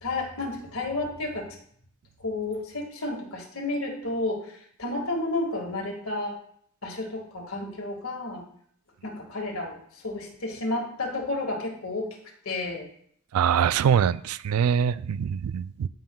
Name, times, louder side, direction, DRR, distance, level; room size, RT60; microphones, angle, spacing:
voice 1, 0.0-1.5 2.2-4.5 4.8-6.3 6.8-8.4 9.0-9.8 10.0-12.2 12.5-12.9, left 2 dB, 70° left, 1.9 m, -31 dB
voice 2, 13.3-15.9, right 8 dB, 90° right, 0.3 m, -23 dB
15.0 x 5.4 x 2.3 m
head